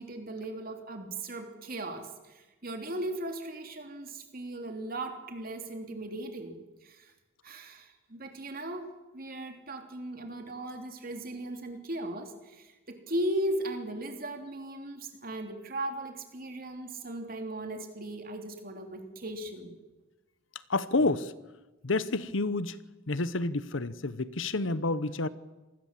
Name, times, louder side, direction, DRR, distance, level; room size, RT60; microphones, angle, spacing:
voice 1, 0.0-7.1 7.4-19.8, right 1 dB, 45° right, 5 dB, 3.2 m, -37 dB
voice 2, 20.7-21.3 21.8-22.8 23.1-25.3, left 2 dB, 75° left, 16 dB, 1.0 m, -29 dB
26.5 x 19.5 x 7.6 m, 1.1 s
head